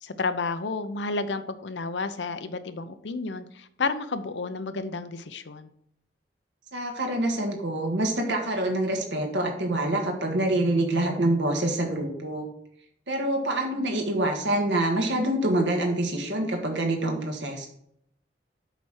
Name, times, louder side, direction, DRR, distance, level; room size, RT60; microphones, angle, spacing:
voice 1, 0.0-5.7, left 3 dB, 80° left, 11 dB, 0.7 m, -31 dB
voice 2, 6.7-12.5 13.1-17.7, right 1 dB, 85° right, 2 dB, 1.6 m, -26 dB
8.1 x 4.3 x 6.3 m, 0.71 s
head